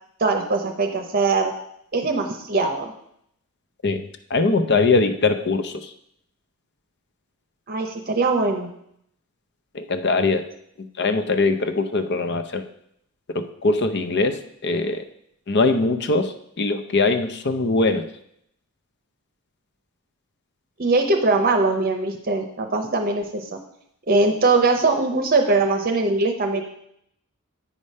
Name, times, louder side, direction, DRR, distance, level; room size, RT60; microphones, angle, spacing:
voice 1, 0.2-1.5 1.9-2.9 7.7-8.7 20.8-23.5 24.1-26.6, right 3 dB, 40° right, 4 dB, 0.7 m, -21 dB
voice 2, 3.8-5.9 9.7-10.5 10.8-12.6 13.3-15.1 15.5-18.1, left 3 dB, 50° left, 9 dB, 0.6 m, -22 dB
8.6 x 5.0 x 5.4 m, 0.73 s
head